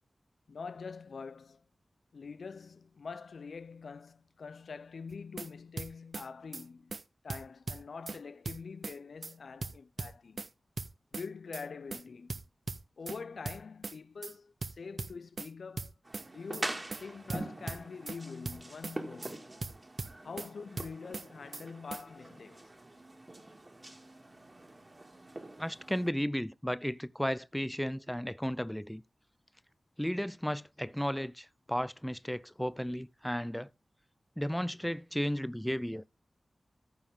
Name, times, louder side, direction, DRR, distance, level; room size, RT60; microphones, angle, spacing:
voice 1, 0.5-1.6 2.1-6.9 7.2-10.4 11.1-12.4 13.0-15.9 16.3-19.5 20.2-22.7, left 5 dB, 90° left, 0.4 m, -45 dB
sound 1, 5.1-5.5 5.8-6.3 6.5-6.6 6.9-7.0 7.3-8.2 8.4-9.0 9.2-9.3 9.6-10.5 10.8-11.3 11.5-11.6 11.9-12.0 12.3-13.2 13.5-14.0 14.2-14.3 14.6-15.5 15.8-16.3 16.5-16.6 16.9-17.0 17.3-18.2 18.5-19.0 19.2-19.3 19.6-20.5 20.8-21.3 21.5-21.6 21.9-22.0, right 3 dB, 60° right, 0.7 m, -39 dB
sound 2, 16.0-26.1, right 2 dB, 30° right, 1.9 m, -44 dB
voice 2, 25.6-29.0 30.0-33.7 34.4-36.0, equal, 5° left, 0.4 m, -34 dB
14.5 x 5.5 x 3.6 m
wide cardioid pair, 90°, 0 cm